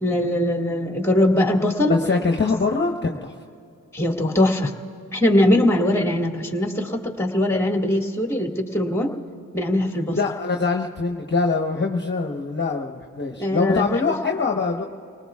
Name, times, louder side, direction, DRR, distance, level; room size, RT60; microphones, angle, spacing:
voice 1, 0.0-2.0 3.9-4.7 5.1-9.2 9.5-10.2 13.4-13.8, left 1 dB, 5° left, 1 dB, 2.0 m, -21 dB
voice 2, 1.9-3.4 10.2-14.8, left 4 dB, 30° left, 1 dB, 1.1 m, -23 dB
30.0 x 19.0 x 2.4 m, 2.4 s
supercardioid pair, 45°, 37 cm